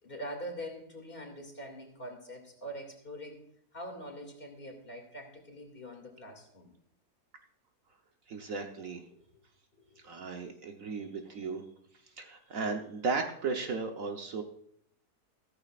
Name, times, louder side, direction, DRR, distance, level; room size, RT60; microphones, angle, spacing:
voice 1, 0.0-3.4 3.7-6.7 9.9-10.0, equal, 35° left, 2 dB, 2.6 m, -43 dB
voice 2, 8.3-9.0 10.0-11.6 12.2-14.4, right 4 dB, 60° right, 4 dB, 1.4 m, -35 dB
15.0 x 14.5 x 2.5 m, 0.70 s
omnidirectional pair, 1.7 m